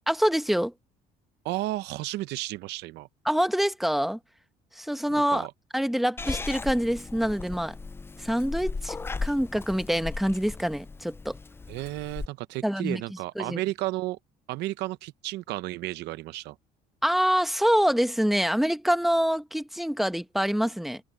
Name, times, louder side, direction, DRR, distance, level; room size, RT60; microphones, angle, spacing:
voice 1, 0.1-0.7 3.2-4.2 4.7-5.5 5.7-7.7 8.2-9.0 9.2-11.4 12.6-13.0 13.4-13.6 17.0-21.0, equal, ahead, 1.1 m, -25 dB
voice 2, 1.4-3.1 5.1-5.5 11.7-14.2 14.5-16.6, right 17 dB, 85° right, 0.7 m, -33 dB
Purr / Meow, 6.2-12.3, left 4 dB, 15° left, 0.4 m, -36 dB
cardioid pair, 110°, 17 cm